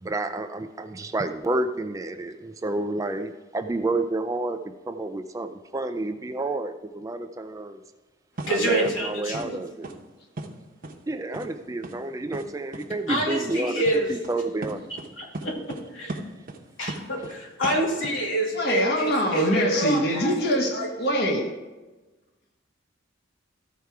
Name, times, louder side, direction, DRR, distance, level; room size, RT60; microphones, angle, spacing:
voice 1, 0.0-4.6 4.9-7.8 8.5-9.9 11.1-14.8, right 2 dB, 15° right, 8 dB, 0.3 m, -30 dB
sound 1, 8.4-8.5 8.8-9.0 9.3-9.5 9.8-10.0 10.4-10.5 10.8-10.9 11.3-11.5 11.8-11.9 12.3-12.4 12.7-12.8 13.1-13.2 13.5-13.6 13.9-14.0 14.2-14.3 14.6-15.1 15.3-15.8 16.1-17.3 17.6-18.2, right 2 dB, 45° right, 0.9 m, -35 dB
voice 2, 8.5-9.6 13.1-14.1 14.9-16.1 16.8-20.9, right 1 dB, 75° left, -2 dB, 2.4 m, -27 dB
voice 3, 18.5-21.5, equal, 55° left, 1 dB, 1.2 m, -24 dB
14.0 x 4.6 x 4.7 m, 1.2 s
head